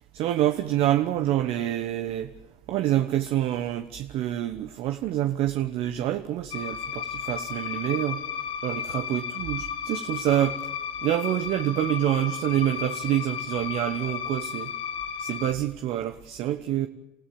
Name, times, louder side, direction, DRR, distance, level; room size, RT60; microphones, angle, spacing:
voice 1, 0.1-2.3 2.7-8.2 8.6-10.6 11.0-14.7 15.2-16.9, right 12 dB, 65° right, 1.2 m, -27 dB
sound 1, 6.5-15.5, left 7 dB, 55° left, 1.8 m, -34 dB
28.0 x 15.5 x 8.6 m
supercardioid pair, 80°, 11 cm